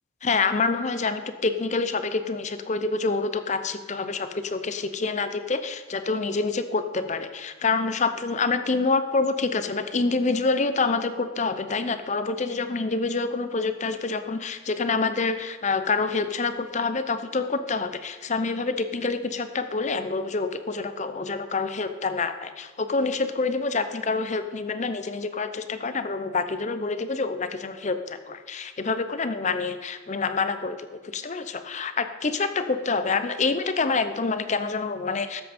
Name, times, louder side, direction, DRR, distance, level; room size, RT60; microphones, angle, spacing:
voice 1, 0.2-35.4, left 4 dB, 35° left, 10 dB, 0.6 m, -27 dB
13.0 x 8.1 x 4.3 m, 1.3 s
head